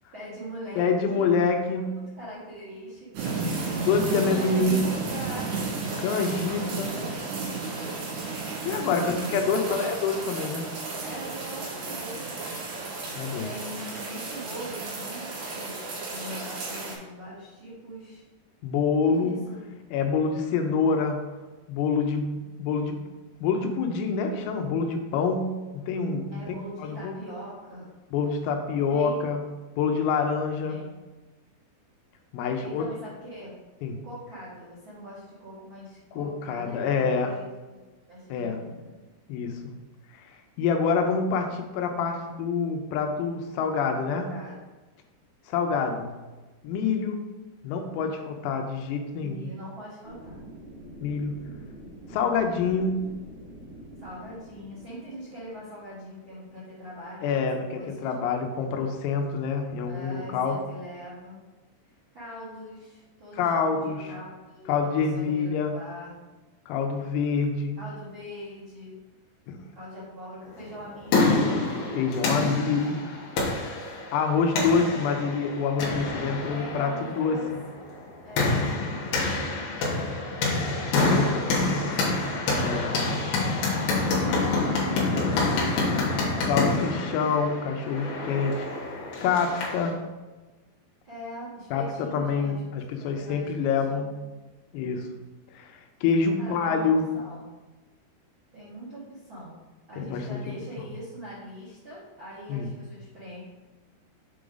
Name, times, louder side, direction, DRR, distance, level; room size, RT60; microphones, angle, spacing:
voice 1, 0.1-1.3 1.7-1.9 2.2-3.4 4.3-5.5 6.6-8.0 8.8-9.7 11.0-12.6 13.4-18.2 19.0-19.8 26.3-27.9 28.9-29.3 30.6-30.9 32.6-33.5 34.0-38.9 43.8-44.5 49.2-50.4 54.0-58.1 59.8-61.4 61.8-66.1 67.8-69.0 69.7-71.5 76.5-77.5 78.2-80.5 81.1-82.2 84.0-87.1 91.0-94.1 96.4-97.4 98.5-99.6 99.9-103.4, equal, 80° right, -10 dB, 1.1 m, -42 dB
voice 2, 0.8-1.9 3.9-4.9 6.0-6.9 8.7-10.6 13.2-13.5 18.6-19.4 19.9-21.2 21.7-23.0 23.4-27.1 28.1-29.4 29.8-30.8 32.3-32.9 33.8-34.0 36.2-37.3 38.3-38.6 39.3-39.7 40.1-40.3 40.6-44.3 45.5-46.1 46.6-47.2 47.6-49.5 51.0-51.4 52.1-53.0 57.2-60.6 63.4-64.1 64.7-65.7 66.7-67.8 69.5-69.6 71.9-73.2 74.1-77.4 78.4-78.6 80.9-81.3 82.6-83.0 84.3-84.4 86.5-88.7 89.2-90.0 91.7-94.1 94.7-95.1 95.5-97.1 100.0-100.3 100.8-100.9 102.5-102.7, left 5 dB, 85° left, 4 dB, 3.4 m, -26 dB
sound 1, 3.1-16.9, right 3 dB, 60° right, 3.8 m, -33 dB
sound 2, 50.0-56.0, right 1 dB, 35° right, 2.4 m, -46 dB
sound 3, 70.7-89.9, left 3 dB, 65° left, 2.8 m, -27 dB
7.6 x 4.9 x 3.9 m, 1.2 s
omnidirectional pair, 6.0 m